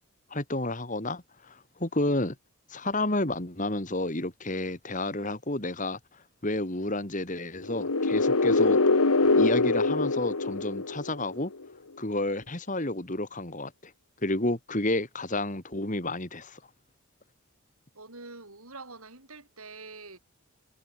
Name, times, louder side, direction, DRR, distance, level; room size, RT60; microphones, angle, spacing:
voice 1, 0.3-2.4 2.7-6.0 6.4-11.5 12.0-13.9 14.2-16.6, left 2 dB, 35° left, 2.3 m, -31 dB
sound 1, 7.6-11.4, left 3 dB, 80° left, 1.4 m, -24 dB
voice 2, 17.9-20.2, right 3 dB, 75° right, 6.5 m, -45 dB
head